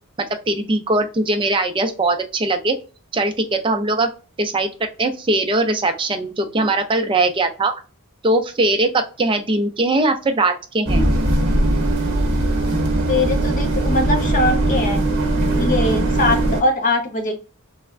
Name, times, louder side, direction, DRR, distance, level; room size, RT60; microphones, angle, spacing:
voice 1, 0.5-2.7 3.1-4.1 4.4-4.7 5.0-7.7 8.2-11.1, right 2 dB, 20° right, 6 dB, 0.4 m, -20 dB
sound 1, 10.9-16.6, right 1 dB, 60° right, 0.9 m, -19 dB
voice 2, 13.1-15.0 15.5-17.4, left 2 dB, 35° left, 4 dB, 0.6 m, -21 dB
3.2 x 2.0 x 2.4 m, 0.34 s
head